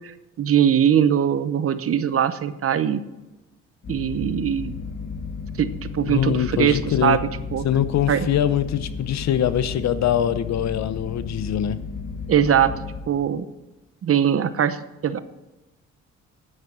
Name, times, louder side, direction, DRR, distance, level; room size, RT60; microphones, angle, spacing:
voice 1, 0.0-3.0 3.9-4.7 5.6-7.7 8.1-8.3 12.3-12.7 13.1-13.5 14.0-14.8 15.0-15.2, right 9 dB, 50° right, 13 dB, 0.8 m, -21 dB
sound 1, 3.8-13.0, left 5 dB, 45° left, 2.5 m, -33 dB
voice 2, 6.1-7.2 7.6-11.8, left 10 dB, 65° left, 14 dB, 0.8 m, -23 dB
10.0 x 9.3 x 6.1 m, 1.0 s
cardioid pair, 90°, 30 cm